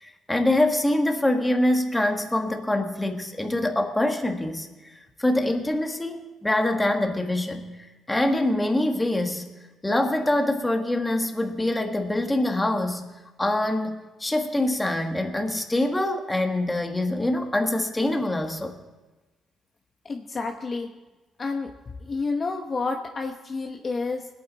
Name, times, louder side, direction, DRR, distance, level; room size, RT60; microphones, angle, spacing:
voice 1, 0.0-4.7 5.2-7.7 8.1-9.5 9.8-13.1 13.4-18.7, left 1 dB, 15° left, 4 dB, 1.5 m, -24 dB
voice 2, 20.0-20.9 21.4-21.7 22.0-24.3, left 3 dB, 40° left, 3 dB, 0.9 m, -29 dB
21.0 x 8.8 x 4.1 m, 1.2 s
cardioid pair, 90°, 0 cm